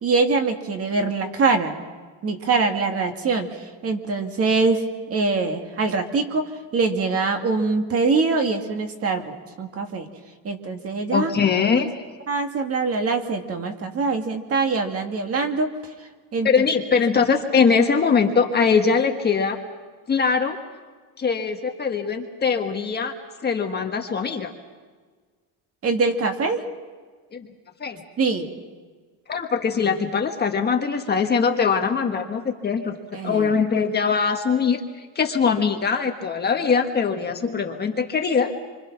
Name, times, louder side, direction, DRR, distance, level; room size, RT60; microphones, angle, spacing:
voice 1, 0.0-1.8 2.2-3.5 3.8-4.8 5.1-10.1 10.4-11.3 12.3-15.7 16.3-16.5 25.8-26.6 28.2-28.5 33.1-33.5, right 4 dB, 35° right, 5 dB, 2.0 m, -23 dB
voice 2, 11.1-12.0 16.4-19.6 20.1-20.6 21.2-23.1 23.4-24.5 27.3-27.5 27.8-28.0 29.3-32.9 33.2-38.5, left 5 dB, 25° left, 3 dB, 1.5 m, -22 dB
27.5 x 25.0 x 6.0 m, 1.5 s
cardioid pair, 170°, 41 cm